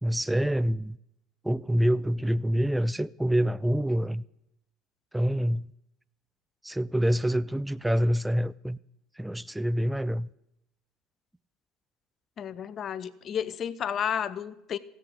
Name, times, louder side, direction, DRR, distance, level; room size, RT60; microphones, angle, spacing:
voice 1, 0.0-1.0 1.4-4.2 5.1-5.7 6.6-8.8 9.2-10.3, equal, 5° right, 0.3 m, -26 dB
voice 2, 12.4-14.8, left 8 dB, 45° left, 0.6 m, -32 dB
16.0 x 8.5 x 3.5 m
hypercardioid pair, 75°, 0 cm